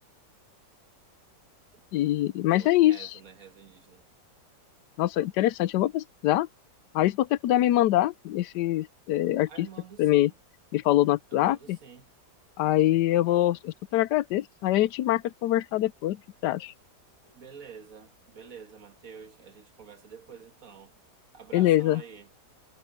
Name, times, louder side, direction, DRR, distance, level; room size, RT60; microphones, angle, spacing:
voice 1, 1.9-3.1 5.0-6.5 6.9-9.7 10.0-10.3 10.7-11.8 12.6-16.7 21.5-22.0, left 14 dB, 80° left, 1.2 m, -24 dB
voice 2, 2.5-4.1 9.4-10.3 11.3-12.1 13.1-13.6 17.2-20.9 21.3-22.3, right 6 dB, 55° right, 2.0 m, -48 dB
omnidirectional pair, 1.8 m